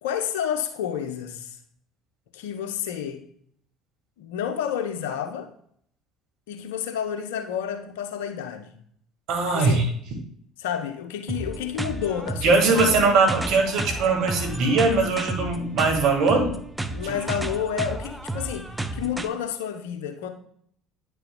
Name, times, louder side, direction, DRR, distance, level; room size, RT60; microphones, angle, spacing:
voice 1, 0.0-1.6 2.3-3.3 4.2-5.5 6.5-8.7 9.5-9.9 10.6-12.9 16.9-20.3, left 9 dB, 75° left, 0.8 m, -30 dB
voice 2, 9.3-9.9 12.4-16.5, right 3 dB, 65° right, 1.9 m, -21 dB
sound 1, 11.3-19.3, right 2 dB, 10° right, 0.7 m, -32 dB
9.7 x 6.7 x 2.3 m
hypercardioid pair, 60°, 0 cm